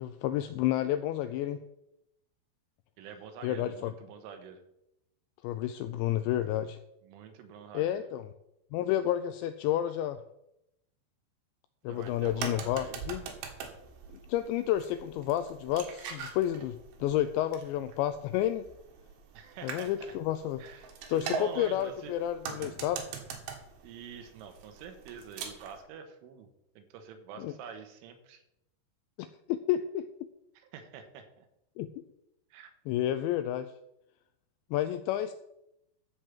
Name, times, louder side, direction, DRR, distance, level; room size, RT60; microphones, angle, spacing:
voice 1, 0.0-1.6 3.4-3.9 5.4-6.8 7.7-8.3 8.7-10.2 11.8-13.2 14.3-18.6 19.6-20.6 21.1-23.1 27.4-27.5 29.2-30.1 31.8-32.0 32.9-33.7 34.7-35.3, left 12 dB, 85° left, 11 dB, 2.6 m, -30 dB
voice 2, 3.0-4.6 7.0-8.1 11.9-13.0 19.3-20.2 20.6-22.1 23.8-26.5 26.8-28.4 30.6-31.5 32.5-32.7, right 7 dB, 85° right, 7 dB, 3.7 m, -46 dB
sound 1, 12.0-25.8, right 6 dB, 70° right, 3.4 m, -43 dB
13.0 x 5.0 x 7.3 m, 0.83 s
omnidirectional pair, 5.6 m